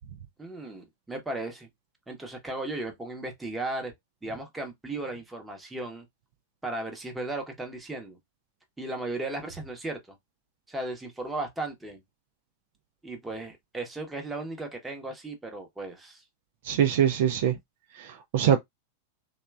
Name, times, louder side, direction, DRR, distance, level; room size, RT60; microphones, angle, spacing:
voice 1, 0.4-1.7 2.1-3.9 4.2-6.1 6.6-8.2 8.8-10.0 10.7-12.0 13.0-16.2, right 2 dB, 10° right, 0.8 m, -36 dB
voice 2, 16.6-17.6 17.9-18.6, right 9 dB, 55° right, 0.3 m, -23 dB
3.0 x 2.2 x 2.2 m
figure-of-eight pair, 90°, 0 cm